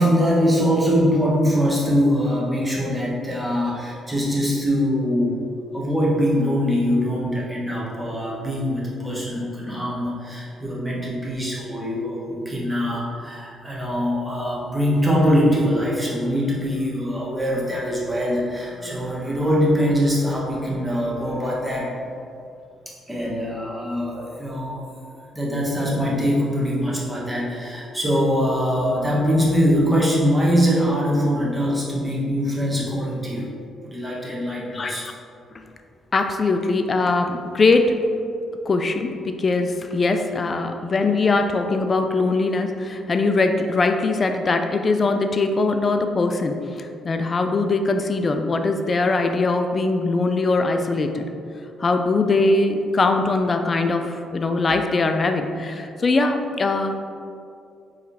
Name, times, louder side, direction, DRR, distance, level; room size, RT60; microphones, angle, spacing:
voice 1, 0.0-5.3 5.7-21.9 23.1-24.8 25.3-33.5 33.8-35.1, equal, 10° right, -5 dB, 1.2 m, -22 dB
voice 2, 34.7-35.1 35.5-35.6 36.1-38.0 38.7-51.2 51.8-57.0, left 3 dB, 35° left, 6 dB, 0.3 m, -21 dB
4.6 x 3.2 x 3.3 m, 2.5 s
cardioid pair, 90°, 0 cm